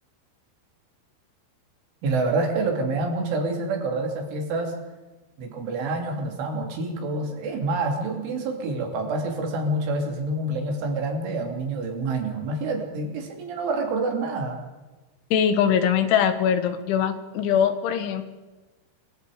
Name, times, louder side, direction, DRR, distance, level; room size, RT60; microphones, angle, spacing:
voice 1, 2.0-4.7 5.4-14.6, right 2 dB, 90° right, 2 dB, 5.6 m, -27 dB
voice 2, 15.3-18.2, left 8 dB, 80° left, 9 dB, 3.9 m, -22 dB
24.5 x 23.0 x 5.1 m, 1.2 s
omnidirectional pair, 5.4 m